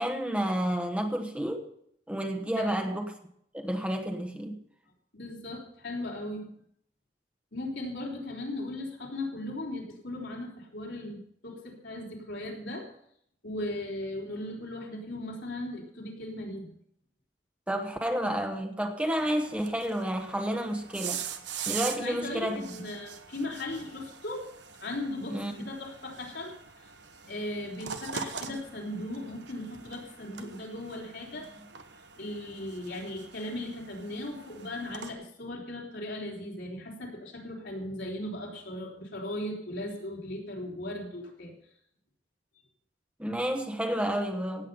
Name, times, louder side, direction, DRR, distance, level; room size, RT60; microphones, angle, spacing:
voice 1, 0.0-1.7 2.1-3.1 3.5-4.6 17.7-21.2 21.7-22.6 25.3-25.5 43.2-44.7, equal, 5° right, 4 dB, 1.2 m, -30 dB
voice 2, 2.6-2.9 5.1-6.5 7.5-12.9 13.4-16.7 22.0-24.5 24.8-26.9 27.2-31.7 32.2-41.5, left 1 dB, 75° left, -2 dB, 3.9 m, -37 dB
sound 1, 19.2-35.1, right 7 dB, 85° right, 1.2 m, -43 dB
17.0 x 8.6 x 5.5 m, 0.69 s
head